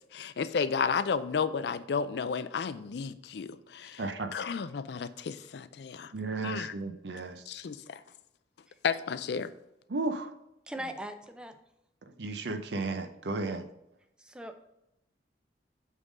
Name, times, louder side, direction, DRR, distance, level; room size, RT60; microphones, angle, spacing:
voice 1, 0.1-4.0 4.3-6.1 6.4-6.7 7.5-8.0 8.8-9.5, left 6 dB, 65° left, 14 dB, 0.4 m, -32 dB
voice 2, 4.0-4.4 6.1-7.4 9.9-10.3 12.1-13.6, right 3 dB, 70° right, 9 dB, 0.7 m, -34 dB
voice 3, 10.7-11.5 14.2-14.5, equal, 5° right, 7 dB, 0.5 m, -40 dB
8.2 x 3.7 x 5.2 m, 0.85 s
head